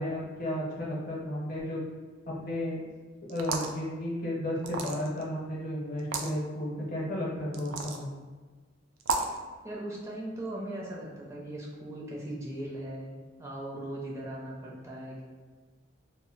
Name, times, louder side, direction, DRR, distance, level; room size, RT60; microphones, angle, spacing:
voice 1, 0.0-1.8 2.3-2.8 3.3-8.1, left 1 dB, 50° left, -4 dB, 0.7 m, -33 dB
sound 1, 3.3-3.8 4.6-5.2 6.0-6.3 7.5-8.0 9.0-9.4, right 4 dB, 85° right, 0.3 m, -32 dB
voice 2, 9.6-15.2, right 1 dB, 15° right, -5 dB, 0.4 m, -39 dB
2.1 x 2.0 x 3.7 m, 1.4 s
head